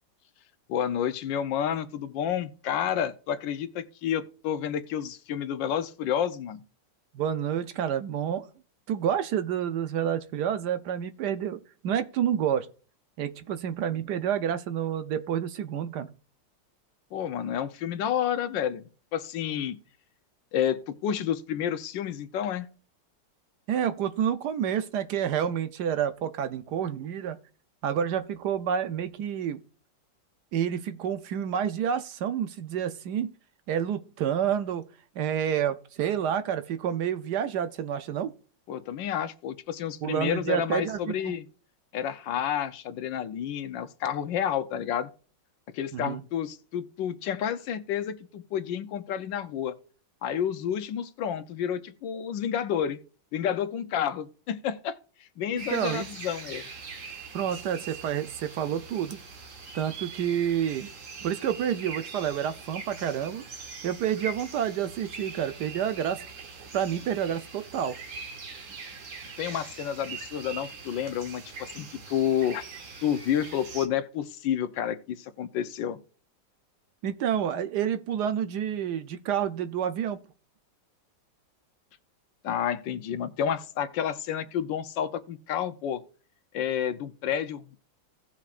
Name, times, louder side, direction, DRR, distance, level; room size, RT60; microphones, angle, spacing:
voice 1, 0.7-6.6 17.1-19.8 20.5-22.7 38.7-41.5 41.9-45.1 45.7-49.7 50.2-53.0 53.3-55.0 55.4-56.6 69.4-72.7 73.0-76.0 82.4-86.0 86.5-87.8, left 9 dB, 85° left, 1.5 m, -30 dB
voice 2, 7.1-8.5 8.9-12.7 13.2-16.1 23.7-27.4 27.8-29.6 30.5-33.3 33.7-34.9 35.2-38.3 40.0-41.3 45.9-46.2 55.7-56.1 57.3-59.2 59.7-60.9 61.2-63.4 63.8-66.2 66.7-68.0 77.0-80.2, right 9 dB, 70° right, 1.2 m, -29 dB
sound 1, 55.6-73.9, right 4 dB, 50° right, 1.3 m, -42 dB
16.5 x 5.8 x 2.5 m
omnidirectional pair, 2.0 m